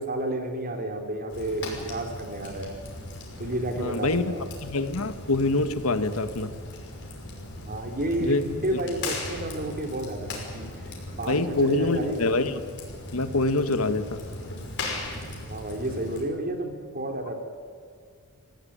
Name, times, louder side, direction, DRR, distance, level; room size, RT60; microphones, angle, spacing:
voice 1, 0.0-2.7 3.4-4.4 7.7-10.7 11.2-12.2 15.5-17.3, right 1 dB, 45° right, 4 dB, 3.4 m, -31 dB
Fire, 1.3-16.2, left 2 dB, 55° left, 5.7 m, -38 dB
voice 2, 3.8-4.3 4.6-6.5 8.2-8.4 8.7-8.8 11.3-12.5 13.1-14.2, left 2 dB, 75° left, 10 dB, 1.5 m, -25 dB
25.0 x 16.0 x 10.0 m, 2.1 s
head